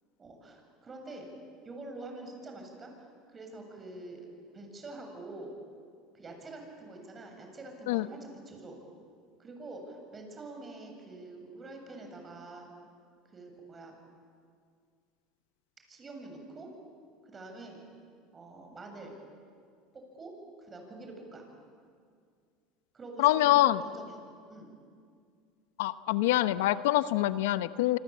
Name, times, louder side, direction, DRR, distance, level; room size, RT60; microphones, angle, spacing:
voice 1, 0.2-1.3 1.6-4.3 4.5-5.6 6.1-8.8 9.4-12.7 13.3-13.9 15.9-16.7 17.2-17.8 18.3-19.2 19.9-21.5 22.9-24.2 24.5-24.7, right 2 dB, 25° right, 3 dB, 7.7 m, -46 dB
voice 2, 23.2-23.8 25.8-28.0, left 15 dB, 80° left, 15 dB, 0.8 m, -25 dB
26.5 x 26.5 x 8.6 m, 2.2 s
supercardioid pair, 105°, 0 cm